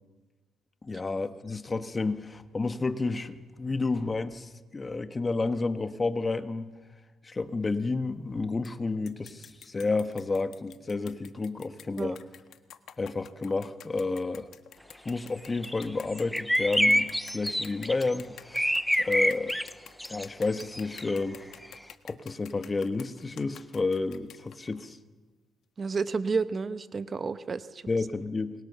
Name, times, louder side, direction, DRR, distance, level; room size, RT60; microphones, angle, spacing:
voice 1, 0.8-6.7 7.2-12.2 13.0-14.5 15.0-19.5 20.1-21.5 22.0-25.0 27.9-28.5, left 3 dB, 25° left, 9 dB, 1.5 m, -31 dB
sound 1, 8.6-8.7 9.1-24.9, left 10 dB, 75° left, 1.4 m, -50 dB
sound 2, 15.6-15.8 16.1-18.2 18.5-19.7 20.0-20.3 20.6-21.2, equal, ahead, 0.8 m, -26 dB
voice 2, 25.8-27.8, right 4 dB, 40° right, 11 dB, 1.1 m, -30 dB
28.5 x 22.5 x 7.0 m, 1.3 s
cardioid pair, 90°, 0 cm